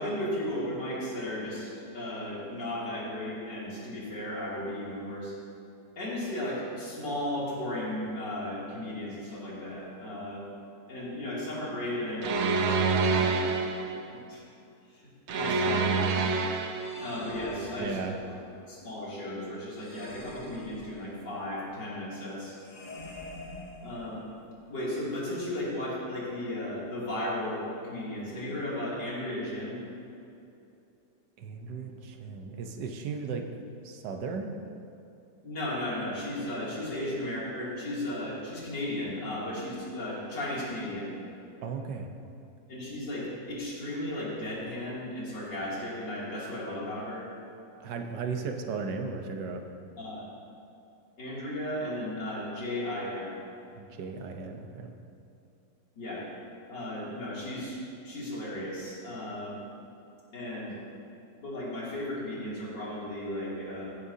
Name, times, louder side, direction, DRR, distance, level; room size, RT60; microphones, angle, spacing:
voice 1, 0.0-5.3 6.0-10.5 10.9-13.4 13.8-14.0 14.3-14.4 14.9-16.0 17.0-18.0 18.3-18.4 18.7-22.6 23.8-24.2 24.7-29.8 35.4-41.1 42.7-47.3 50.0-50.2 51.2-53.4 55.9-56.2 56.7-59.6 60.3-60.8 61.4-63.9, left 1 dB, 80° left, -7 dB, 3.4 m, -35 dB
sound 1, 12.2-14.0 15.3-17.0, right 4 dB, 60° right, 0.7 m, -27 dB
sound 2, 16.7-18.4 19.7-21.4 22.6-24.5, left 2 dB, 30° left, 1.2 m, -45 dB
voice 2, 17.8-18.1 31.4-33.5 33.8-34.6 41.6-42.1 47.8-49.6 53.8-54.9, right 5 dB, 80° right, 5 dB, 1.5 m, -36 dB
16.5 x 10.0 x 2.8 m, 2.7 s
omnidirectional pair, 1.8 m